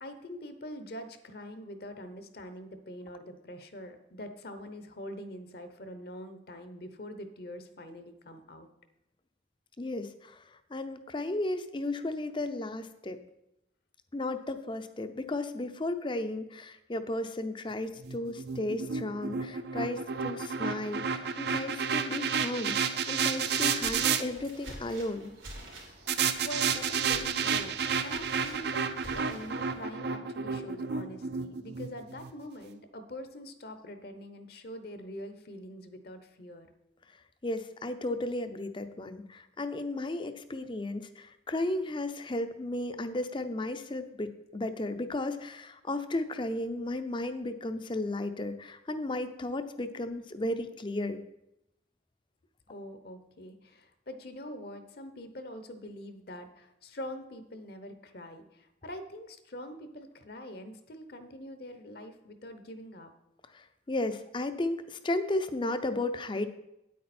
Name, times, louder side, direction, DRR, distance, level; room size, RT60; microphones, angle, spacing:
voice 1, 0.0-8.7 26.4-27.8 28.0-36.7 52.7-63.1, left 1 dB, 55° left, 9 dB, 0.8 m, -44 dB
voice 2, 9.8-10.4 10.7-13.2 14.1-22.8 23.1-25.3 37.4-51.2 63.5-66.5, left 2 dB, 25° left, 10 dB, 0.5 m, -34 dB
sound 1, 18.0-24.2 26.1-32.3, right 6 dB, 55° right, 0.6 m, -31 dB
sound 2, 23.4-29.8, right 1 dB, 90° right, 3.1 m, -48 dB
9.3 x 8.5 x 4.3 m, 0.86 s
head